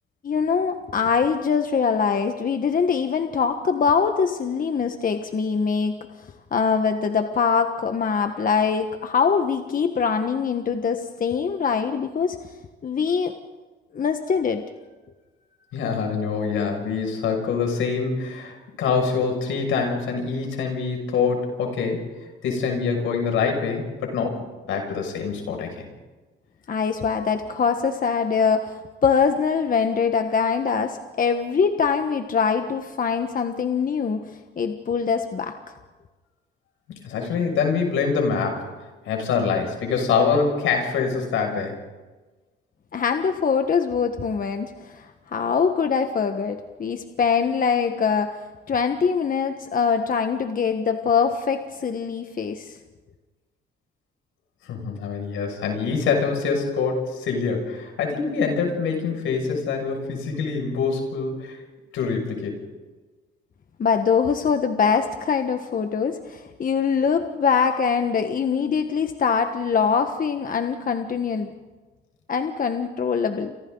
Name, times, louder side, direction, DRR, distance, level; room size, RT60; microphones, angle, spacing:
voice 1, 0.2-12.4 12.8-13.3 13.9-14.6 26.7-35.5 42.9-48.4 48.7-52.8 63.8-71.5 72.3-73.5, left 6 dB, 45° left, 6 dB, 1.5 m, -23 dB
voice 2, 15.7-22.0 22.4-24.4 24.7-25.8 36.9-38.7 39.0-41.7 54.6-61.6 61.9-62.6, left 5 dB, 85° left, 2 dB, 6.6 m, -25 dB
29.5 x 26.5 x 4.0 m, 1.3 s
cardioid pair, 90°, 20 cm